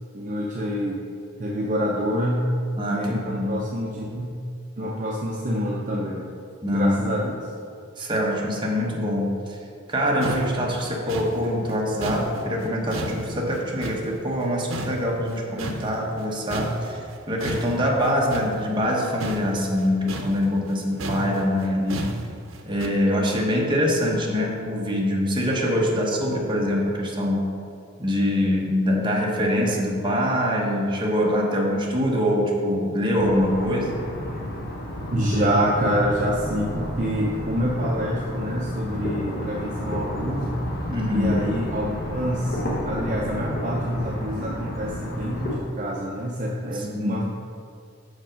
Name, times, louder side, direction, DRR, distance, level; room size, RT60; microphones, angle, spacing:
voice 1, 0.1-1.0 1.4-2.5 2.9-4.4 4.8-6.3 6.7-7.5 35.1-40.6 41.1-42.6 42.8-47.2, equal, 40° right, -3 dB, 0.6 m, -26 dB
voice 2, 2.8-3.6 6.6-7.0 8.0-9.6 9.9-22.1 22.6-27.6 28.0-34.0 40.9-41.4 46.7-47.2, equal, 25° right, -2 dB, 1.0 m, -24 dB
sound 1, 9.9-10.0 10.2-14.4 14.7-16.2 16.5-22.9, right 2 dB, 80° right, 0.6 m, -33 dB
sound 2, 33.1-45.6, equal, 50° left, 1.2 m, -31 dB
6.3 x 5.1 x 5.0 m, 2.4 s
head